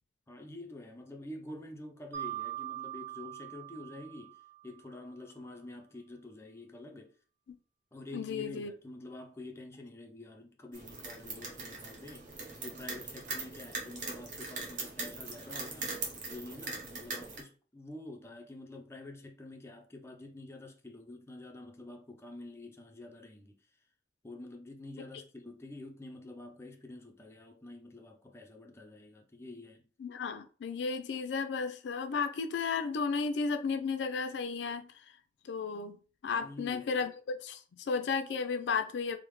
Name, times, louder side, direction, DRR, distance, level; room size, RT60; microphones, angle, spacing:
voice 1, 0.3-7.1 7.9-12.3 12.6-15.9 16.3-23.6 24.2-29.8 36.3-36.9, left 2 dB, 15° left, 0.4 m, -47 dB
Mallet percussion, 2.1-4.9, right 13 dB, 90° right, 0.8 m, -42 dB
voice 2, 8.1-8.7 30.0-35.1 35.4-39.2, left 5 dB, 80° left, 0.4 m, -34 dB
sound 1, 10.7-17.4, right 3 dB, 45° right, 0.8 m, -41 dB
3.3 x 2.1 x 3.1 m
head